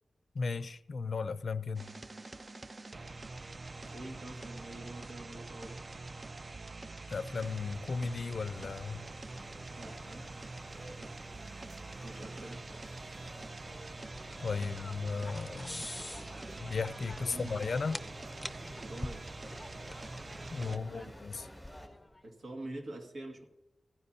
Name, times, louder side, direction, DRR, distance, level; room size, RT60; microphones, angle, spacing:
voice 1, 0.3-1.9 7.1-9.0 14.4-15.9 16.6-18.0 20.5-21.5, left 4 dB, 60° left, 0.4 m, -35 dB
sound 1, 1.7-20.8, right 3 dB, 35° right, 0.3 m, -45 dB
voice 2, 3.9-5.8 9.8-10.3 11.0-11.2 12.0-12.6 17.2-17.6 18.8-19.3 20.7-21.2 22.2-23.4, right 1 dB, 80° right, 2.0 m, -46 dB
sound 2, 7.4-21.9, equal, 15° right, 3.1 m, -53 dB
sound 3, 13.7-22.2, left 1 dB, 10° left, 0.7 m, -47 dB
16.0 x 15.0 x 2.8 m
wide cardioid pair, 135°, 0 cm